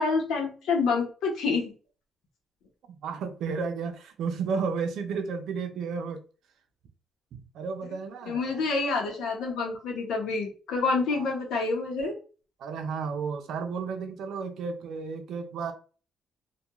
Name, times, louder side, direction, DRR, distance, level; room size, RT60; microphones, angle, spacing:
voice 1, 0.0-1.7 8.3-12.1, left 4 dB, 85° left, 0.8 m, -27 dB
voice 2, 2.9-6.2 7.3-8.6 11.1-11.3 12.6-15.7, right 5 dB, 75° right, 0.5 m, -33 dB
2.2 x 2.2 x 2.9 m
cardioid pair, 90°, 0 cm